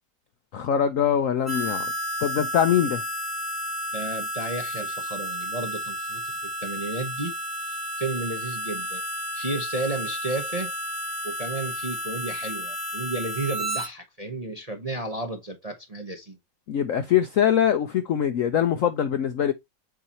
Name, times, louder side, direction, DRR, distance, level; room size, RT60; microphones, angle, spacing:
voice 1, 0.5-1.9 2.2-3.0 16.7-19.5, left 9 dB, 70° left, 0.8 m, -23 dB
Harmonica, 1.4-13.9, equal, 10° left, 1.4 m, -32 dB
voice 2, 3.9-7.3 7.7-9.0 9.3-10.7 11.2-16.4, right 2 dB, 30° right, 0.6 m, -33 dB
7.9 x 2.8 x 4.2 m
omnidirectional pair, 2.0 m